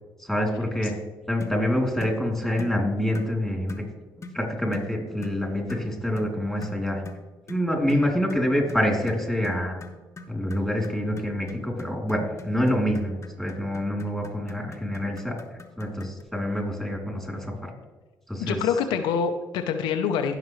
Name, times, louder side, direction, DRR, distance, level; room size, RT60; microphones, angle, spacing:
voice 1, 0.2-1.0 1.3-3.8 4.3-7.0 7.5-9.8 10.3-15.4 15.8-17.7 18.3-18.6, equal, ahead, 1 dB, 3.2 m, -26 dB
sound 1, 1.4-1.6 2.0-2.2 2.6-2.8 3.2-3.3 3.7-3.9 4.2-4.4 4.7-4.9 5.2-5.4 5.7-5.9 6.2-6.3 6.6-16.2, left 3 dB, 35° left, 1.2 m, -43 dB
voice 2, 18.4-20.4, left 6 dB, 85° left, 6 dB, 0.6 m, -25 dB
15.5 x 6.0 x 3.2 m, 1.2 s
supercardioid pair, 65°, 8 cm